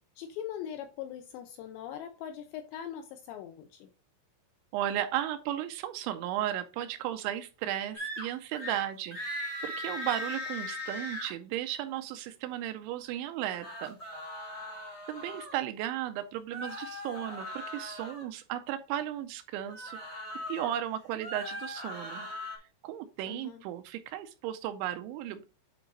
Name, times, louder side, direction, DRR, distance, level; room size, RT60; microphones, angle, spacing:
voice 1, 0.2-3.9 23.3-23.6, left 10 dB, 80° left, 6 dB, 2.5 m, -41 dB
voice 2, 4.7-14.0 15.1-20.0 20.5-22.3 22.8-25.5, right 12 dB, 85° right, 9 dB, 2.7 m, -35 dB
sound 1, 7.9-8.3 8.5-8.8 9.1-11.3 13.4-15.5 16.5-18.2 19.7-20.7 21.1-22.6, left 1 dB, 25° left, 1.4 m, -39 dB
9.2 x 3.8 x 3.9 m, 0.32 s
omnidirectional pair, 5.7 m